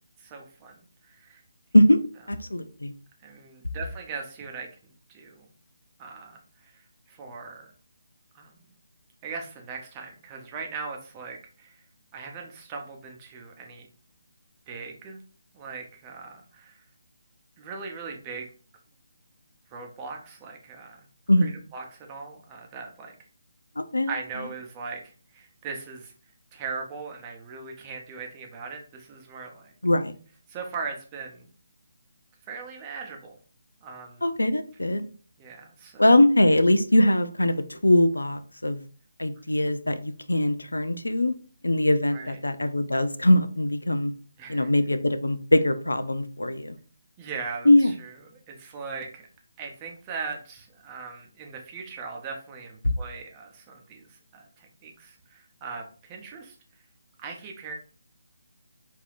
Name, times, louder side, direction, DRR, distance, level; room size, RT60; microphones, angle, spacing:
voice 1, 0.2-0.8 1.1-1.4 3.2-4.7 5.1-5.5 6.0-6.7 7.1-7.7 8.3-8.5 9.2-11.8 12.1-13.9 14.7-15.2 15.5-16.8 17.6-18.5 19.7-21.0 21.4-23.1 24.1-25.0 25.3-26.1 26.5-29.7 30.5-31.5 32.5-33.4 33.8-34.2 35.4-36.0 39.6-39.7 42.1-42.4 44.4-44.7 47.2-48.2 48.5-49.2 49.6-54.1 54.3-56.6 57.2-57.7, right 5 dB, 20° right, 1 dB, 0.6 m, -39 dB
voice 2, 2.3-2.9 21.3-21.5 23.8-24.1 29.8-30.1 34.2-35.1 36.0-38.8 39.2-41.3 41.6-44.1 44.5-46.8 47.7-47.9 52.8-52.9, left 1 dB, 90° left, 10 dB, 0.4 m, -21 dB
3.3 x 2.7 x 2.4 m, 0.40 s
figure-of-eight pair, 150°, 0 cm